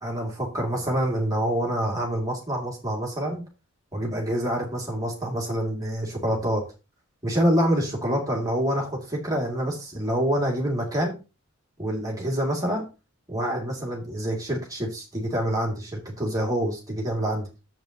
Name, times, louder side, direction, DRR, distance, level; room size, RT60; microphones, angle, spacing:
voice 1, 0.0-3.4 3.9-6.6 7.2-11.2 11.8-12.8 13.3-17.5, equal, 15° right, -2 dB, 2.5 m, -26 dB
11.0 x 7.8 x 2.9 m, 0.29 s
head